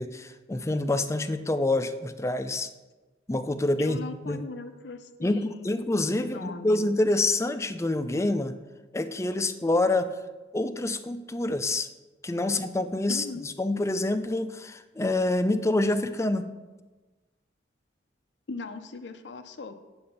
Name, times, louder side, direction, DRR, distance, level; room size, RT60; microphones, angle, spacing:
voice 1, 0.0-2.7 3.3-4.4 5.2-8.6 8.9-10.1 10.5-11.9 12.2-16.4, left 2 dB, 15° left, 10 dB, 0.5 m, -27 dB
voice 2, 3.8-5.7 6.2-6.8 13.1-13.5 18.5-19.7, left 3 dB, 65° left, 9 dB, 0.6 m, -39 dB
8.8 x 7.8 x 5.3 m, 1.2 s
head